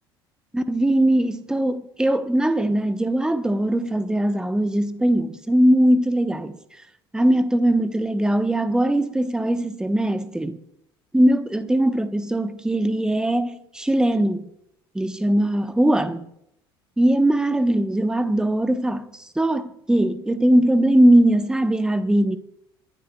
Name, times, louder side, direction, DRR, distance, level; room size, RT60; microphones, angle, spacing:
voice 1, 0.5-6.6 7.1-10.6 11.1-14.5 14.9-16.3 17.0-22.4, right 1 dB, 5° right, 1.0 m, -20 dB
26.0 x 11.5 x 2.3 m
hypercardioid pair, 65°, 13 cm